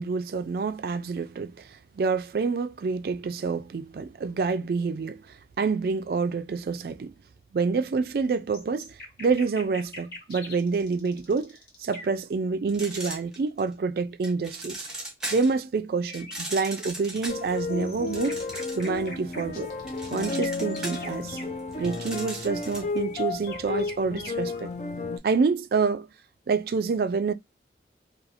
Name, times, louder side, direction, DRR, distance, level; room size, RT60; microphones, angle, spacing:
voice 1, 0.0-5.2 5.6-7.1 7.5-14.9 15.3-18.4 18.7-19.7 20.1-21.4 21.8-24.7 25.2-26.1 26.5-27.3, right 4 dB, 55° right, 0.3 m, -27 dB
sound 1, 8.3-12.2 16.1-17.1 17.5-21.5 22.9-24.7, left 1 dB, 55° left, 1.0 m, -44 dB
sound 2, 12.7-13.7 14.2-15.6 16.1-19.1 19.4-23.0, right 1 dB, 5° right, 0.7 m, -38 dB
sound 3, 17.3-25.2, left 3 dB, 40° left, 0.4 m, -32 dB
2.5 x 2.3 x 2.7 m
head